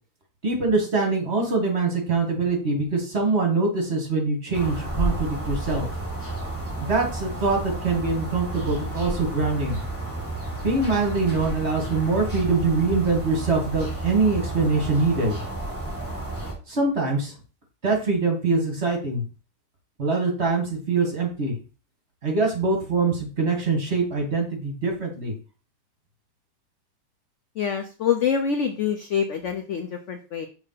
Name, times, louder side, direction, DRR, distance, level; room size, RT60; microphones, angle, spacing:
voice 1, 0.4-5.9 6.8-9.8 10.6-15.4 16.7-17.3 17.8-19.2 20.0-21.6 22.2-25.3, right 3 dB, 35° right, 1 dB, 1.9 m, -24 dB
sound 1, 4.5-16.5, right 2 dB, 5° right, 2.8 m, -31 dB
voice 2, 27.6-30.5, left 7 dB, 70° left, 7 dB, 0.7 m, -25 dB
6.4 x 3.3 x 5.7 m, 0.36 s
omnidirectional pair, 2.0 m